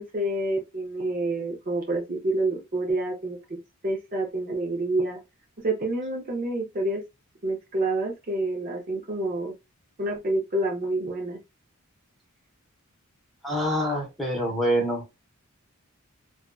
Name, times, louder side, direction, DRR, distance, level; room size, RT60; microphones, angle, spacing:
voice 1, 0.0-3.6 3.8-5.2 5.6-7.0 7.4-9.5 10.0-11.4, right 2 dB, 40° right, 0.6 m, -28 dB
voice 2, 13.4-15.0, equal, ahead, 0.8 m, -25 dB
2.5 x 2.2 x 2.3 m
head